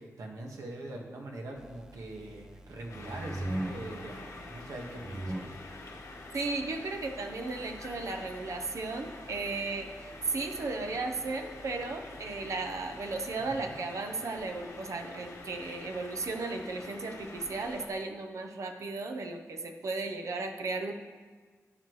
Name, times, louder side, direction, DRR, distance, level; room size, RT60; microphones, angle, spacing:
voice 1, 0.0-5.5 13.4-13.7, right 2 dB, 85° right, 0 dB, 1.7 m, -43 dB
sound 1, 1.6-13.8, right 1 dB, 10° right, 0.4 m, -44 dB
sound 2, 2.9-17.9, left 2 dB, 90° left, 1.7 m, -47 dB
voice 2, 6.3-20.9, right 3 dB, 65° right, 5 dB, 0.8 m, -35 dB
11.5 x 8.5 x 3.2 m, 1.5 s
cardioid pair, 80°, 6 cm